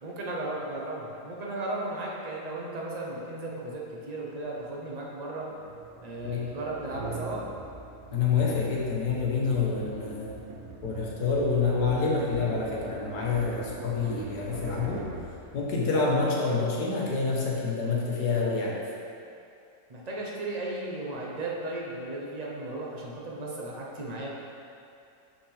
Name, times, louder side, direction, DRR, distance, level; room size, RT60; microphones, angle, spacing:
voice 1, 0.0-5.5 6.0-7.5 19.9-24.3, right 2 dB, 35° right, -3 dB, 0.7 m, -35 dB
sound 1, 5.5-16.1, right 3 dB, 65° right, 1.1 m, -42 dB
voice 2, 8.1-10.4 10.8-15.0 15.5-18.8, left 4 dB, 75° left, -4 dB, 1.6 m, -27 dB
6.6 x 5.8 x 3.4 m, 2.5 s
omnidirectional pair, 1.8 m